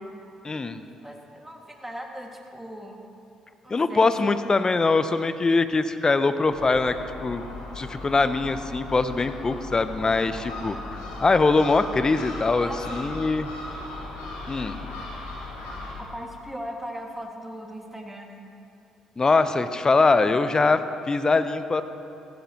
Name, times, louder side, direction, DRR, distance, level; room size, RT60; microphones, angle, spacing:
voice 1, 0.4-0.8 3.7-7.0 7.2-7.4 7.8-10.7 11.2-13.5 14.5-14.8 19.2-21.8, left 3 dB, 30° left, 11 dB, 0.7 m, -22 dB
voice 2, 1.0-3.1 3.6-4.4 12.6-13.0 16.0-18.5, equal, 10° right, 1 dB, 1.9 m, -39 dB
Gull seagull, 6.4-15.9, left 2 dB, 75° left, 2.2 m, -37 dB
15.5 x 15.0 x 2.9 m, 2.6 s
hypercardioid pair, 45°, 2 cm